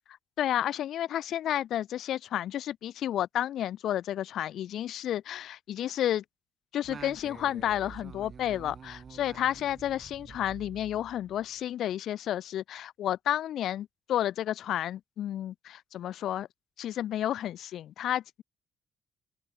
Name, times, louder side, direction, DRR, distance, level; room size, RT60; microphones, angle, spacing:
voice 1, 0.4-6.2 6.7-16.5 16.8-18.4, left 11 dB, 70° left, 1.3 m, -31 dB
Singing, 6.8-11.6, right 6 dB, 40° right, 2.7 m, -48 dB
open air
cardioid pair, 120°, 0 cm